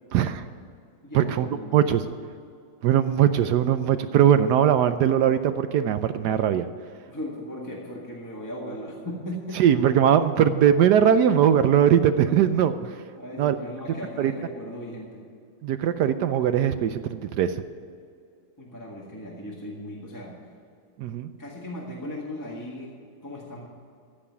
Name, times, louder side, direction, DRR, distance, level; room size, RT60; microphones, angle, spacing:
voice 1, 0.1-0.4 1.1-2.1 2.8-6.7 9.6-12.9 13.4-13.6 14.2-14.3 15.6-17.5 21.0-21.3, right 9 dB, 70° right, 11 dB, 1.1 m, -20 dB
voice 2, 1.0-1.9 7.1-9.6 13.2-15.2 18.6-20.3 21.4-23.0 23.2-23.7, left 1 dB, 10° left, -4 dB, 1.7 m, -37 dB
15.0 x 5.5 x 9.7 m, 2.3 s
omnidirectional pair, 2.0 m